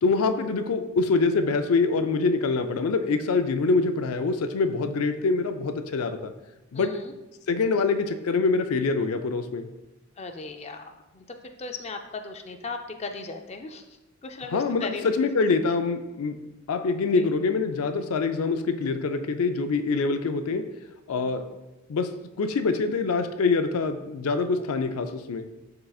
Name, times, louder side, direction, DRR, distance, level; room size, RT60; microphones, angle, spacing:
voice 1, 0.0-6.3 6.7-7.0 7.5-9.7 14.5-16.4 16.7-20.7 21.1-21.5 21.9-25.5, left 4 dB, 90° left, 8 dB, 0.5 m, -25 dB
voice 2, 6.7-7.1 10.2-13.8 14.2-15.0 17.2-17.3 21.1-21.4 24.6-24.8, left 3 dB, 30° left, 5 dB, 0.4 m, -37 dB
11.0 x 3.8 x 2.3 m, 1.0 s
head